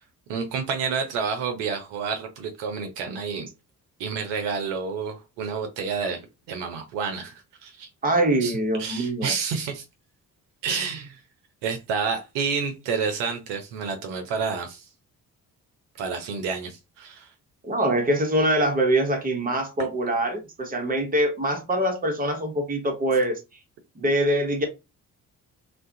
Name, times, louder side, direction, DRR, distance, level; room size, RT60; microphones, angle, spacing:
voice 1, 0.3-3.5 4.0-6.2 6.5-7.9 8.4-9.8 10.6-11.2 11.6-14.8 16.0-17.3, right 5 dB, 70° right, 0.6 m, -29 dB
voice 2, 8.0-9.4 17.6-23.4 24.0-24.7, right 1 dB, 20° right, 0.9 m, -24 dB
2.3 x 2.2 x 2.6 m
hypercardioid pair, 40°, 46 cm